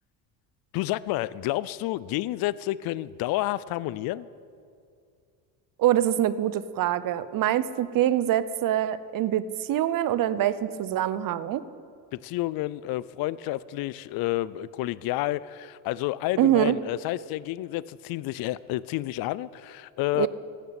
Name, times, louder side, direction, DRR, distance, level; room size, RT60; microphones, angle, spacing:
voice 1, 0.7-4.3 12.1-20.3, left 16 dB, 50° left, 19 dB, 0.5 m, -30 dB
voice 2, 5.8-11.6 16.4-16.8 20.1-20.3, right 12 dB, 45° right, 15 dB, 0.7 m, -24 dB
16.0 x 6.7 x 8.8 m, 2.3 s
supercardioid pair, 95°, 46 cm